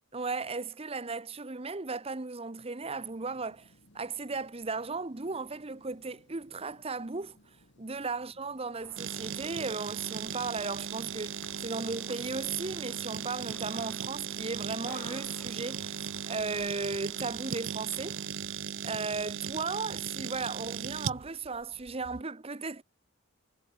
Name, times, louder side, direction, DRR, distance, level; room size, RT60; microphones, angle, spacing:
voice 1, 0.1-7.4 7.8-16.0 16.3-18.2 18.8-22.8, right 4 dB, 25° right, 0.8 m, -36 dB
sound 1, 2.8-21.2, left 1 dB, 50° left, 5.8 m, -63 dB
sound 2, 8.8-18.3, left 1 dB, 10° left, 2.4 m, -55 dB
sound 3, 9.0-22.2, right 8 dB, 60° right, 0.8 m, -37 dB
head